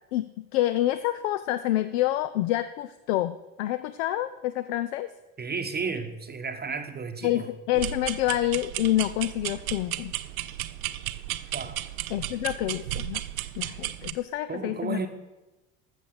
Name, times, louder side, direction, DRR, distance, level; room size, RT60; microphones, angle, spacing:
voice 1, 0.1-5.1 7.2-10.1 12.1-13.2 13.6-15.0, left 14 dB, 60° left, 0.6 m, -27 dB
voice 2, 5.4-7.5 11.5-11.8 14.5-15.1, right 4 dB, 20° right, 1.0 m, -33 dB
sound 1, 7.7-14.1, right 13 dB, 75° right, 0.6 m, -34 dB
13.0 x 7.4 x 6.5 m
figure-of-eight pair, 55°, 43 cm